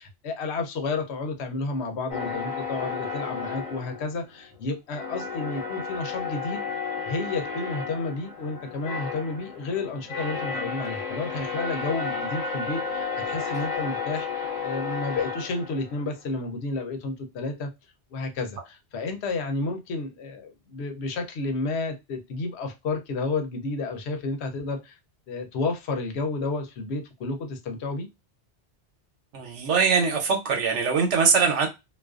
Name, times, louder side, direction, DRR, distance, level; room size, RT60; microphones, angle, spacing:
voice 1, 0.0-6.6 7.1-17.7 18.1-25.0 25.3-28.1, left 3 dB, 75° left, 0.9 m, -31 dB
sound 1, 2.1-4.6 4.9-16.1, left 5 dB, 40° left, 0.8 m, -32 dB
voice 2, 29.3-31.7, right 5 dB, 80° right, 1.0 m, -22 dB
2.4 x 2.2 x 2.3 m
omnidirectional pair, 1.2 m